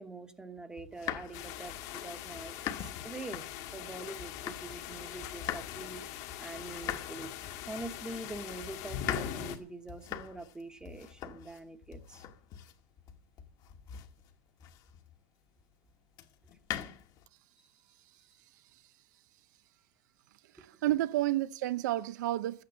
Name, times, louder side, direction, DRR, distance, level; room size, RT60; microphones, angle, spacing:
voice 1, 0.0-3.4 3.7-6.0 6.4-7.3 7.7-12.2, right 2 dB, 10° right, 1.1 m, -44 dB
sound 1, 0.8-4.9 5.2-15.1 16.1-17.3, left 10 dB, 45° left, 1.3 m, -43 dB
sound 2, 1.3-9.6, left 11 dB, 60° left, 1.7 m, -42 dB
voice 2, 18.5-18.9 20.4-22.6, right 15 dB, 85° right, 0.6 m, -31 dB
13.5 x 9.0 x 8.5 m
supercardioid pair, 145°, 9 cm